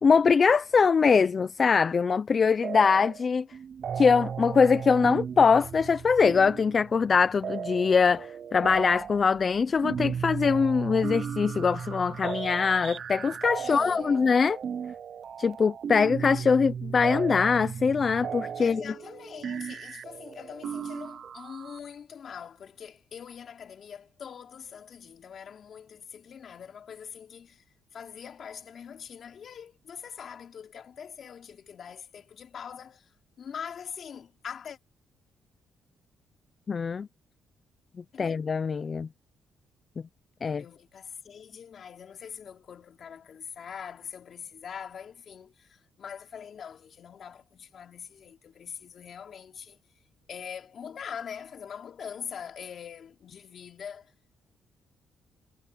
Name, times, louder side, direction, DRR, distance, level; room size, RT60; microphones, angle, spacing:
voice 1, 0.0-3.5 4.0-14.6 15.4-18.8 36.7-37.1 38.2-39.1 40.4-40.6, left 5 dB, 40° left, 0.7 m, -23 dB
sound 1, 2.6-3.3 3.5-21.8, right 7 dB, 55° right, 0.6 m, -36 dB
voice 2, 13.6-14.3 18.6-27.6 27.9-34.8 38.1-38.4 40.4-49.8 50.3-54.1, left 7 dB, 55° left, 3.9 m, -43 dB
cardioid pair, 90°, 0 cm